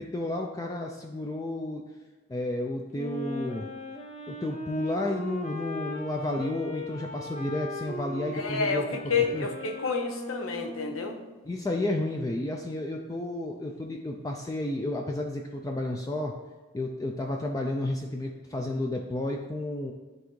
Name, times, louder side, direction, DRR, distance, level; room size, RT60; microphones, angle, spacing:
voice 1, 0.0-1.8 2.3-3.7 4.3-8.8 9.3-9.5 11.4-16.3 16.7-19.9, left 1 dB, 15° left, 1 dB, 0.3 m, -31 dB
Wind instrument woodwind instrument, 2.9-11.3, left 1 dB, 35° left, 0.8 m, -39 dB
voice 2, 8.3-11.2, left 5 dB, 90° left, 5 dB, 0.8 m, -29 dB
9.9 x 3.5 x 3.1 m, 1.3 s
head